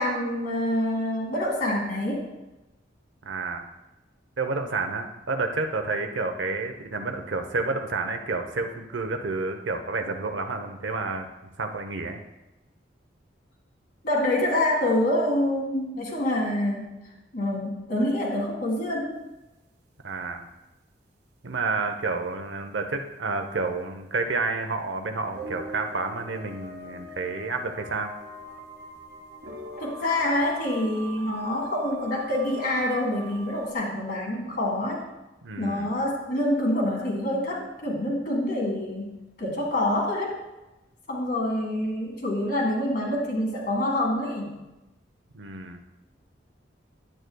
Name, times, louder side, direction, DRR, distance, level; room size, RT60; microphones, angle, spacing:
voice 1, 0.0-2.3 14.0-19.2 29.8-35.0 35.6-40.4 41.1-44.6, left 1 dB, 50° left, 0 dB, 1.8 m, -26 dB
voice 2, 3.2-3.7 4.4-11.3 11.6-12.2 20.0-20.5 21.4-28.1 35.4-35.9 45.3-45.8, right 3 dB, 80° right, 6 dB, 0.8 m, -30 dB
sound 1, 25.3-33.7, right 1 dB, 60° right, 1.2 m, -42 dB
9.7 x 9.1 x 2.3 m, 1.0 s
head